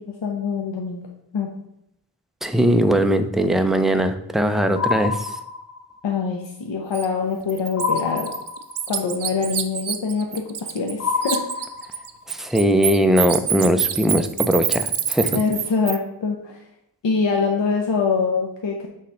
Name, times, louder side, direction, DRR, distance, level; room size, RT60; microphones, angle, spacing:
voice 1, 0.2-1.1 1.3-1.5 6.0-8.3 8.9-11.7 15.3-16.6 17.0-18.9, left 5 dB, 75° left, 1 dB, 0.9 m, -24 dB
voice 2, 2.4-5.3 12.3-15.4, equal, ahead, 8 dB, 0.4 m, -20 dB
sound 1, 4.8-6.0 7.8-9.0 11.0-12.2, left 5 dB, 40° left, 0.7 m, -27 dB
Bird, 6.9-7.1 7.5-11.0 11.2-16.0, right 9 dB, 65° right, 0.6 m, -26 dB
6.4 x 3.2 x 5.5 m, 0.80 s
wide cardioid pair, 105°, 45 cm